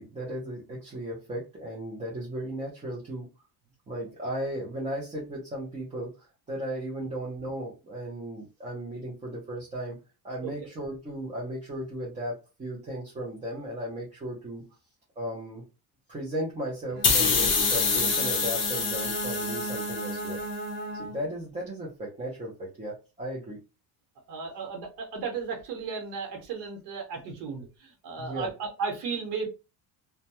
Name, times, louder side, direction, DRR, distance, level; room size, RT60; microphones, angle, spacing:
voice 1, 0.0-3.3 3.9-10.0 10.2-14.6 15.2-15.6 16.1-20.4 20.9-23.6 28.2-28.5, right 1 dB, 15° right, -5 dB, 0.5 m, -36 dB
Bowed string instrument, 16.9-21.4, right 2 dB, 55° right, 0.9 m, -35 dB
sound 1, 17.0-20.4, left 5 dB, 30° left, 0.5 m, -26 dB
voice 2, 24.3-29.5, right 5 dB, 85° right, 2 dB, 0.9 m, -35 dB
2.2 x 2.1 x 2.8 m, 0.29 s
cardioid pair, 175°, 41 cm